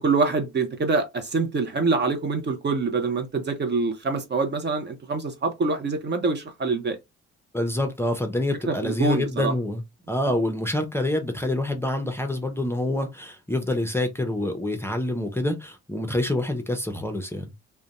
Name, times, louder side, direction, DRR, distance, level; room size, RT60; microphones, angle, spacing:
voice 1, 0.0-7.0 8.7-9.5, right 3 dB, 35° right, 0.6 m, -25 dB
voice 2, 7.5-17.5, left 1 dB, 10° left, 0.5 m, -27 dB
2.5 x 2.1 x 2.9 m
cardioid pair, 90°, 30 cm